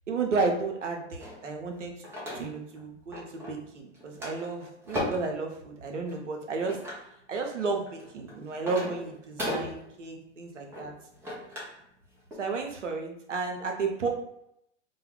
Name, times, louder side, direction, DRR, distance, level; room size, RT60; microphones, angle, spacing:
voice 1, 0.1-1.9 2.3-6.8 7.3-10.9 12.4-14.1, right 4 dB, 80° right, 3 dB, 0.7 m, -32 dB
sound 1, 1.2-2.8 3.1-3.7 3.9-5.4 6.1-7.1 7.7-11.8 12.1-12.3, left 1 dB, 5° right, 0.4 m, -37 dB
2.2 x 2.1 x 3.2 m, 0.77 s
figure-of-eight pair, 110°, 36 cm